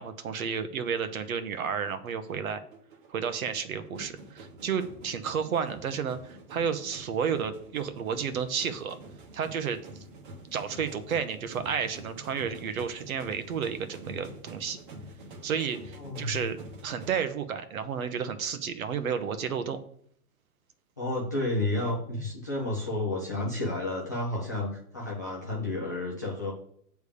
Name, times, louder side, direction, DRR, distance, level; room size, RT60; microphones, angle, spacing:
voice 1, 0.0-2.6 3.1-9.0 9.3-9.8 10.5-14.8 15.4-19.8, right 7 dB, 65° right, 10 dB, 1.0 m, -32 dB
sound 1, 1.8-17.2, right 1 dB, 35° right, 1.1 m, -47 dB
voice 2, 15.9-16.4 21.0-26.5, left 2 dB, 15° left, -5 dB, 0.4 m, -31 dB
8.2 x 3.5 x 6.7 m, 0.65 s
hypercardioid pair, 165°, 45 cm